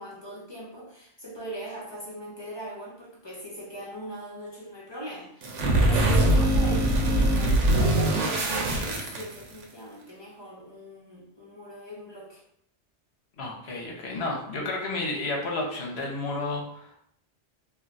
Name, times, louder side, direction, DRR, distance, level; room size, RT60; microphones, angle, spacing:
voice 1, 0.0-12.4, right 1 dB, 30° left, -5 dB, 0.6 m, -40 dB
sound 1, 5.4-9.6, right 1 dB, 90° right, 0.9 m, -22 dB
voice 2, 13.4-17.0, left 2 dB, 70° left, 0 dB, 0.9 m, -31 dB
2.3 x 2.2 x 3.8 m, 0.70 s
omnidirectional pair, 1.2 m